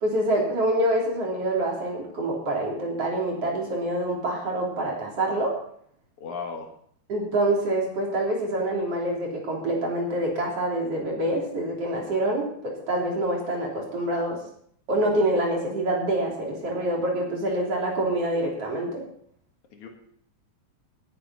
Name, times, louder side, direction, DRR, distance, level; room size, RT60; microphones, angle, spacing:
voice 1, 0.0-5.6 7.1-14.4 14.9-19.0, right 1 dB, 50° right, -2 dB, 4.2 m, -26 dB
voice 2, 6.2-6.7 19.7-19.9, left 5 dB, 70° left, 2 dB, 3.2 m, -35 dB
17.5 x 10.5 x 4.1 m, 0.63 s
omnidirectional pair, 3.6 m